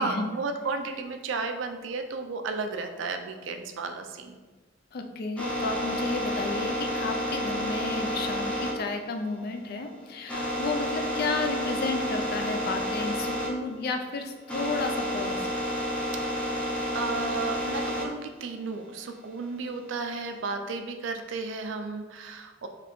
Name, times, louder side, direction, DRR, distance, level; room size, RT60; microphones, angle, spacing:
voice 1, 0.0-4.4 16.3-16.7 16.9-22.7, right 4 dB, 75° right, 6 dB, 0.4 m, -33 dB
voice 2, 4.9-15.4, left 3 dB, 55° left, 5 dB, 0.4 m, -32 dB
sound 1, 5.4-13.5 13.8-18.1 18.6-20.3, equal, 5° left, 0.6 m, -30 dB
4.1 x 3.3 x 3.1 m, 1.3 s
head